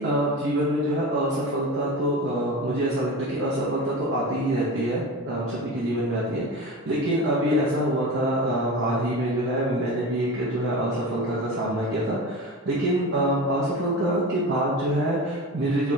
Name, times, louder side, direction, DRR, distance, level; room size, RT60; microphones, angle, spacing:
voice 1, 0.0-15.9, right 1 dB, 60° right, -8 dB, 0.9 m, -25 dB
5.2 x 3.4 x 2.8 m, 1.4 s
head